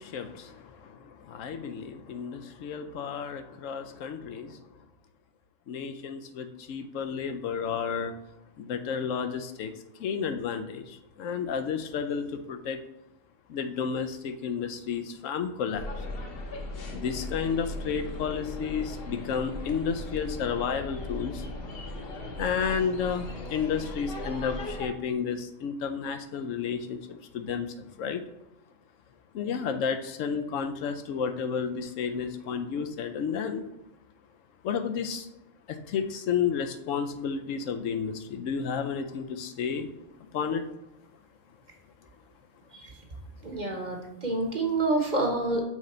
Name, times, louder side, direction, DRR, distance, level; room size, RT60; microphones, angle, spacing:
voice 1, 0.0-4.6 5.7-8.1 8.6-9.7 10.0-12.8 13.5-15.9 16.9-21.4 22.4-27.0 27.3-28.2 29.3-33.6 34.6-35.3 35.7-39.9 40.3-40.6, left 6 dB, 80° left, 8 dB, 1.0 m, -31 dB
sound 1, 15.7-24.9, left 2 dB, 50° left, 1.0 m, -38 dB
voice 2, 43.4-45.6, right 2 dB, 40° right, 2 dB, 1.0 m, -28 dB
6.1 x 3.9 x 4.3 m, 0.90 s
omnidirectional pair, 1.4 m